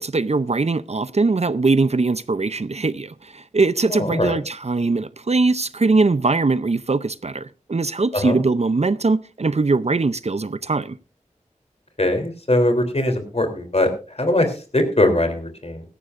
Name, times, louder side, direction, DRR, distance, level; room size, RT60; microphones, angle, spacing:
voice 1, 0.0-11.0, right 3 dB, 55° right, 0.6 m, -21 dB
voice 2, 3.9-4.4 8.1-8.4 12.0-13.9 14.2-15.8, left 1 dB, 50° left, 3.3 m, -21 dB
17.0 x 14.0 x 2.5 m
wide cardioid pair, 55°, 13 cm